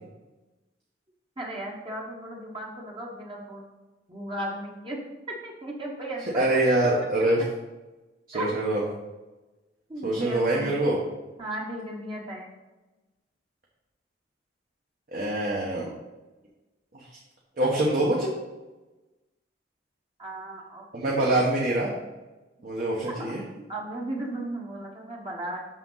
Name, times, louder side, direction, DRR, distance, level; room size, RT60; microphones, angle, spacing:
voice 1, 1.4-3.6 4.1-5.0 5.3-6.5 8.3-8.5 9.9-10.7 11.4-12.5 20.2-21.3 23.7-25.7, right 1 dB, 30° right, -2 dB, 1.1 m, -35 dB
voice 2, 6.3-7.4 8.3-8.8 10.0-11.0 15.1-15.9 17.6-18.3 20.9-21.9 22.6-23.4, right 1 dB, 50° right, -4 dB, 1.2 m, -24 dB
6.8 x 6.1 x 3.9 m, 1.1 s
head